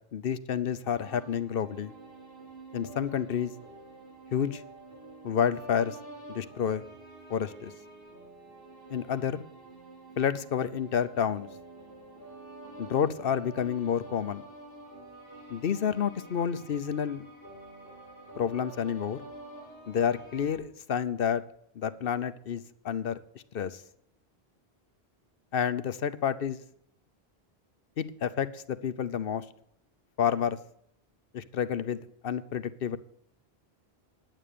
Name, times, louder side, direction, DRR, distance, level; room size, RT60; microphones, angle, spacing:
voice 1, 0.1-1.9 2.7-3.5 4.3-4.6 5.2-6.0 6.3-6.8 7.3-7.7 8.9-9.4 10.2-11.5 12.8-14.4 15.5-17.2 18.4-19.2 19.9-21.4 21.8-23.2 23.5-23.8 25.5-26.6 28.0-29.4 30.2-30.6 31.3-33.0, left 8 dB, 60° left, 13 dB, 0.9 m, -29 dB
sound 1, 0.9-20.6, right 2 dB, 60° right, 5.1 m, -48 dB
10.0 x 9.3 x 6.7 m, 0.68 s
omnidirectional pair, 1.1 m